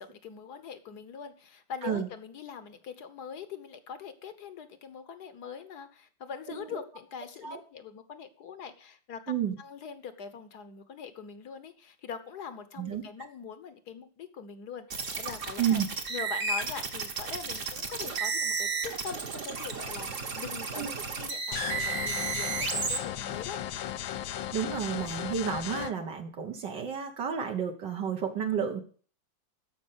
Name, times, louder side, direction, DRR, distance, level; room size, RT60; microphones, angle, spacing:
voice 1, 0.0-9.2 9.6-15.8 16.1-23.6, left 6 dB, 60° left, 11 dB, 1.5 m, -43 dB
sound 1, 14.9-23.0, right 5 dB, 45° right, 1.7 m, -33 dB
sound 2, 21.5-25.9, left 11 dB, 90° left, 1.6 m, -36 dB
voice 2, 24.3-28.8, right 8 dB, 65° right, 3 dB, 1.9 m, -31 dB
13.5 x 5.4 x 8.0 m, 0.43 s
omnidirectional pair, 2.1 m